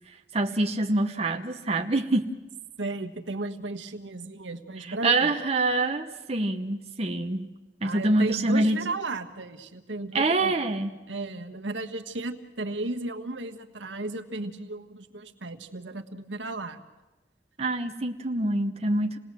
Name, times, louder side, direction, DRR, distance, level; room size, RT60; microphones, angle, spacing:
voice 1, 0.3-2.3 4.9-7.5 7.8-8.8 10.1-10.9 17.6-19.2, right 2 dB, 35° right, 4 dB, 1.0 m, -25 dB
voice 2, 2.8-5.3 7.8-10.5 11.1-16.8, right 2 dB, 85° right, 6 dB, 1.4 m, -34 dB
27.5 x 18.5 x 7.5 m, 1.1 s
head